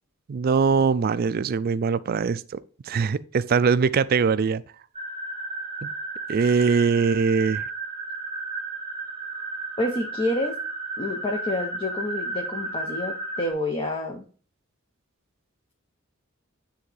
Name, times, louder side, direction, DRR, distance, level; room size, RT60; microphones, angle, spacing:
voice 1, 0.3-2.6 2.9-4.6 5.8-5.9 6.3-7.7, right 5 dB, 45° right, 0.3 m, -22 dB
sound 1, 4.9-13.5, right 3 dB, 20° right, 1.0 m, -33 dB
voice 2, 9.8-10.6 11.0-14.2, left 1 dB, 25° left, 0.8 m, -28 dB
9.4 x 3.5 x 3.3 m
head